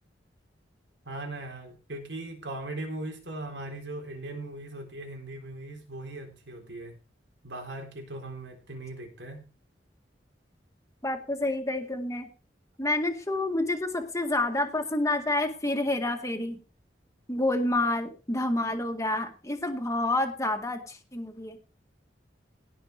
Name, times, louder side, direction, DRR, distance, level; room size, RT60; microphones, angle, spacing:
voice 1, 1.1-7.0 7.4-9.5, right 2 dB, 85° right, 2 dB, 3.9 m, -39 dB
voice 2, 11.0-12.3 12.8-16.6 17.3-21.6, left 2 dB, 20° left, 4 dB, 1.9 m, -28 dB
17.5 x 5.9 x 5.2 m, 0.34 s
head